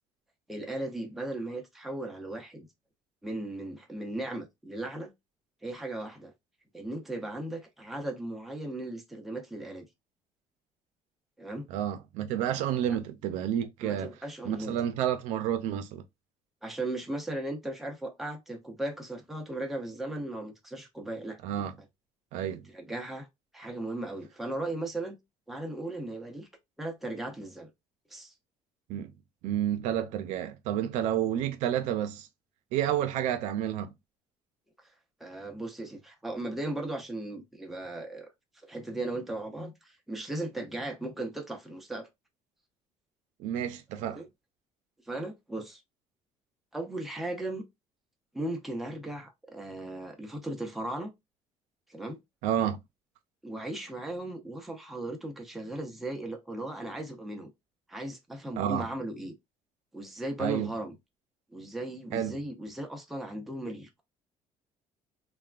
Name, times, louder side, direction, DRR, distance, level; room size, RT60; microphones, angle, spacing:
voice 1, 0.5-2.7 3.2-5.1 5.6-6.3 6.7-9.9 11.4-11.7 12.9-13.0 13.8-14.8 16.6-21.4 22.7-23.3 23.5-25.2 25.5-26.5 26.8-27.7 28.1-28.3 35.2-38.3 38.6-42.1 44.0-44.3 45.1-45.8 46.7-47.6 48.3-51.1 51.9-52.2 53.4-57.5 57.9-59.3 59.9-60.9 61.5-64.0, right 1 dB, ahead, 0.5 m, -37 dB
voice 2, 11.7-14.1 14.5-16.0 21.4-21.7 22.3-22.7 28.9-29.1 29.4-32.3 32.7-33.9 43.4-44.2 52.4-52.8 58.6-58.9 60.4-60.7 62.1-62.4, right 10 dB, 90° right, 0.5 m, -30 dB
3.3 x 2.2 x 2.3 m
cardioid pair, 155°, 12 cm